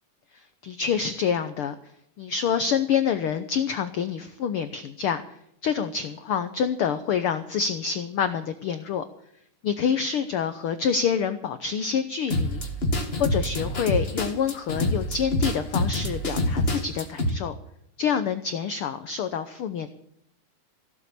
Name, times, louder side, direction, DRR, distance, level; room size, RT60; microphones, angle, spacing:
voice 1, 0.3-1.7 2.2-5.4 5.6-9.0 9.6-12.6 13.2-17.5 18.0-19.9, left 7 dB, 90° left, 10 dB, 1.2 m, -27 dB
sound 1, 12.3-17.3, left 1 dB, 25° left, 1.4 m, -26 dB
16.5 x 7.6 x 8.1 m, 0.73 s
omnidirectional pair, 3.6 m